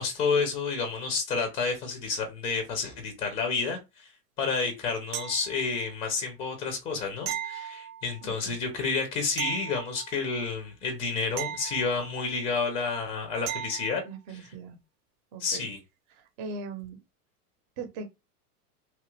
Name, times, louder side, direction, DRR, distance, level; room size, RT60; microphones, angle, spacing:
voice 1, 0.0-4.1 4.4-14.0 14.3-14.5 15.4-15.8, left 4 dB, 15° left, 0.4 m, -30 dB
sound 1, 5.1-5.9 7.3-8.3 9.4-10.4 11.4-12.4 13.5-14.1 16.8-16.9, right 11 dB, 80° right, 0.7 m, -37 dB
voice 2, 8.2-8.6 14.0-14.8 15.3-15.6 16.1-17.0 17.8-18.1, right 4 dB, 45° right, 0.8 m, -40 dB
2.9 x 2.4 x 3.0 m
supercardioid pair, 140°, 45 cm